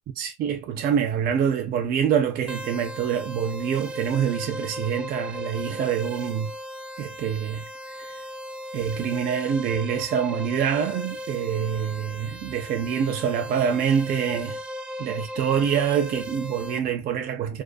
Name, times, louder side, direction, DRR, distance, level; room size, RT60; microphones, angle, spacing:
voice 1, 0.2-6.5 7.0-8.2 8.7-14.6 15.0-17.6, right 8 dB, 60° right, 0.4 m, -26 dB
sound 1, 2.5-16.8, left 1 dB, 5° right, 0.5 m, -37 dB
2.5 x 2.3 x 2.2 m
cardioid pair, 110°, 17 cm